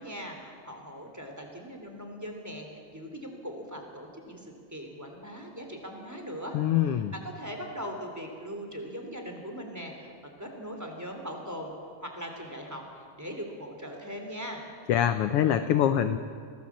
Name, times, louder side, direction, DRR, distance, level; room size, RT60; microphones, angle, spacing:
voice 1, 0.0-10.1 10.4-11.7 12.0-14.6, equal, 5° right, 2 dB, 3.0 m, -40 dB
voice 2, 6.5-7.1 14.9-16.2, left 10 dB, 85° left, 10 dB, 1.3 m, -24 dB
23.5 x 18.0 x 7.4 m, 2.2 s
omnidirectional pair, 3.4 m